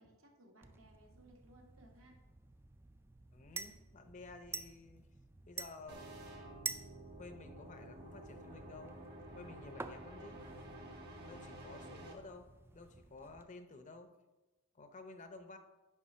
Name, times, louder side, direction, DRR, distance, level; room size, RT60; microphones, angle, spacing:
voice 1, 0.0-2.2, right 1 dB, 70° right, 0 dB, 1.5 m, -62 dB
sound 1, 0.6-13.4, right 4 dB, 10° right, 0.3 m, -50 dB
voice 2, 3.3-5.1 5.4-9.0 9.3-10.5 11.1-14.1 14.7-15.6, left 3 dB, 35° left, 8 dB, 0.6 m, -53 dB
sound 2, 5.9-12.1, right 1 dB, 50° right, 1.2 m, -51 dB
9.4 x 3.4 x 5.6 m, 1.1 s
head